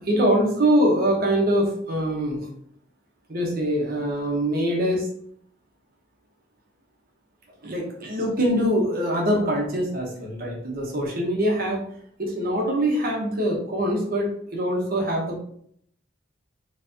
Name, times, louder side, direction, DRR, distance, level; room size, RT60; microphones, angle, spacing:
voice 1, 0.0-2.5 3.3-5.1 7.6-11.9 12.2-15.4, equal, 50° right, -1 dB, 1.0 m, -23 dB
3.5 x 3.2 x 2.7 m, 0.64 s
head